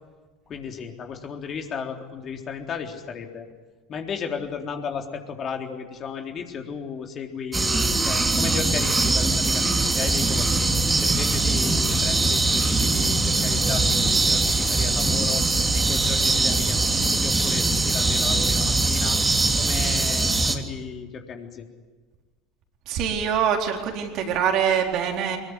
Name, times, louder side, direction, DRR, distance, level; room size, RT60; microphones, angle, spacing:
voice 1, 0.5-3.5 3.9-10.7 11.0-15.4 15.7-19.2 19.6-21.7, left 6 dB, 40° left, 3 dB, 3.7 m, -34 dB
sound 1, 7.5-20.6, right 3 dB, 15° right, 3.0 m, -22 dB
voice 2, 22.9-25.4, right 8 dB, 50° right, 2 dB, 4.4 m, -24 dB
26.0 x 22.0 x 9.9 m, 1.3 s
figure-of-eight pair, 70°, 0 cm